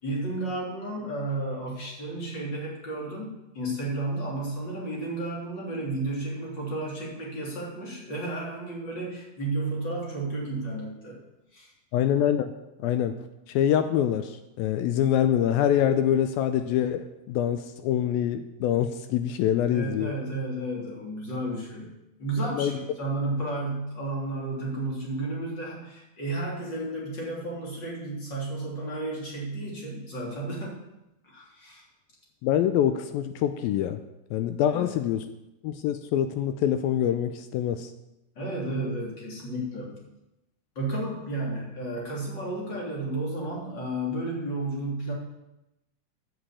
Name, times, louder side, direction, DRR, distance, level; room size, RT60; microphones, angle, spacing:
voice 1, 0.0-11.2 11.5-11.7 19.6-21.9 22.2-30.9 31.2-31.8 34.7-34.9 38.4-39.9 40.8-45.1, right 2 dB, 30° left, -3 dB, 3.6 m, -32 dB
voice 2, 11.9-12.5 12.8-20.2 22.5-22.8 32.4-34.0 34.3-35.2 35.6-37.9, left 10 dB, 80° left, 10 dB, 2.2 m, -25 dB
10.0 x 8.1 x 8.3 m, 0.93 s
omnidirectional pair, 4.5 m